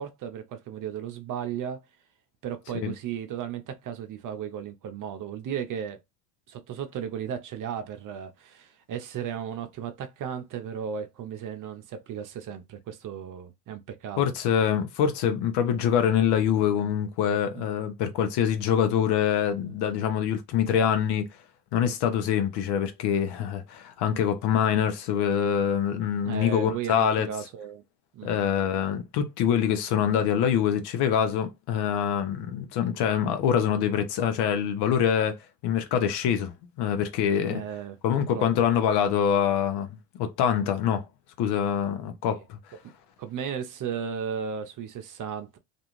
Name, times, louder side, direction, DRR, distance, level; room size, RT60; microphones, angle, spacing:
voice 1, 0.0-1.8 2.4-6.0 6.5-14.3 17.5-17.7 25.2-25.6 26.2-27.8 28.1-28.4 37.5-38.5 42.3-42.4 42.8-42.9 43.2-45.6, right 8 dB, 40° right, 0.6 m, -35 dB
voice 2, 14.2-21.3 21.7-27.3 28.2-36.5 36.8-37.6 38.0-39.9 40.2-41.1 41.4-42.6, left 8 dB, 55° left, 0.8 m, -25 dB
2.5 x 2.4 x 3.0 m
hypercardioid pair, 65°, 47 cm